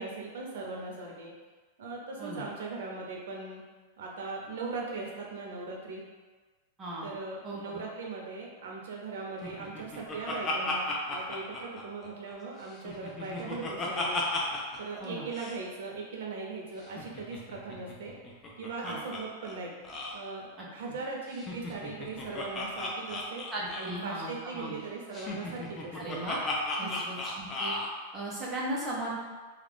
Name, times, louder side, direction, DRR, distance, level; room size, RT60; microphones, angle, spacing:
voice 1, 0.0-1.3 1.8-3.6 4.0-6.0 7.0-14.2 14.8-18.1 18.6-19.7 20.1-23.4 23.8-26.2 26.8-27.1, right 3 dB, 75° right, -1 dB, 0.7 m, -39 dB
voice 2, 7.4-7.8 15.0-15.2 18.8-19.0 20.6-20.7 23.5-24.8 25.9-26.4 26.8-27.7 28.1-29.2, right 1 dB, 15° right, -6 dB, 0.7 m, -37 dB
Laughter, 9.4-12.3 12.7-14.8 15.0-15.1 15.3-15.6 16.8-19.2 19.5-19.6 19.8-20.2 21.3-24.1 25.1-27.9, left 2 dB, 20° left, 0.4 m, -35 dB
2.4 x 2.4 x 3.4 m, 1.3 s
supercardioid pair, 160°, 0 cm